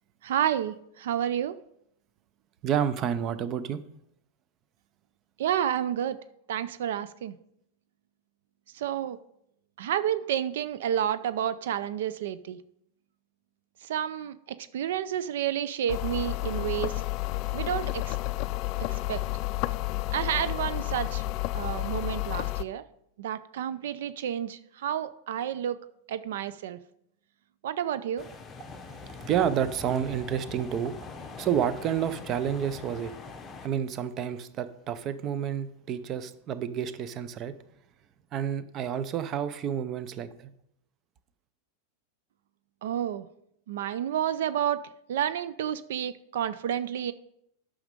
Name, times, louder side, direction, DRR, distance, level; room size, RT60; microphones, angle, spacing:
voice 1, 0.2-1.6 5.4-6.2 6.5-7.3 8.7-9.2 9.8-12.6 13.8-17.0 17.5-18.2 18.8-19.2 20.1-21.2 21.5-22.8 23.2-25.8 26.1-26.8 27.6-28.3 42.8-43.3 43.7-44.8 45.1-47.1, right 10 dB, 75° right, 0.5 m, -30 dB
voice 2, 2.6-3.8 28.7-30.9 31.4-33.1 33.6-37.6 38.3-40.5, right 9 dB, 30° right, 0.6 m, -30 dB
sound 1, 15.9-22.6, left 18 dB, 45° left, 0.4 m, -31 dB
sound 2, 28.2-33.7, left 4 dB, 20° left, 1.0 m, -43 dB
9.4 x 6.3 x 5.2 m
supercardioid pair, 145°, 0 cm